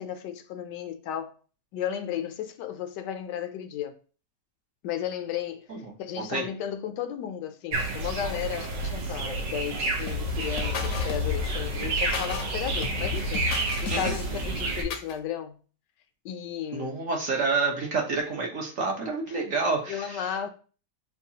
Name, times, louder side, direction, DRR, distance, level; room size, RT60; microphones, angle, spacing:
voice 1, 0.0-1.3 1.7-4.0 4.8-5.7 6.0-15.6 16.2-17.0 19.3-19.4 19.9-20.5, left 9 dB, 80° left, 1.2 m, -34 dB
sound 1, 7.7-14.8, right 3 dB, 90° right, 1.6 m, -30 dB
sound 2, 10.1-15.1, left 7 dB, 60° left, 0.9 m, -33 dB
voice 2, 16.7-20.5, right 3 dB, 60° right, 1.0 m, -29 dB
6.9 x 2.3 x 2.7 m
omnidirectional pair, 1.9 m